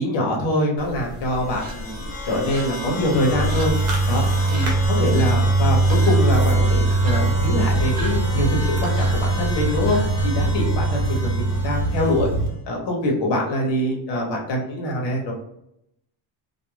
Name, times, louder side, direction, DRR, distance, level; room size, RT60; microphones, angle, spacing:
voice 1, 0.0-3.7 4.1-4.2 4.5-10.0 10.2-12.3 12.7-15.3, left 1 dB, 60° left, -1 dB, 0.9 m, -24 dB
sound 1, 0.8-10.8, equal, 45° right, 0.7 m, -36 dB
sound 2, 1.3-12.5, left 1 dB, 30° left, 0.8 m, -34 dB
sound 3, 3.3-12.5, right 2 dB, 80° right, 0.9 m, -21 dB
2.3 x 2.3 x 3.1 m, 0.79 s
cardioid pair, 165°, 47 cm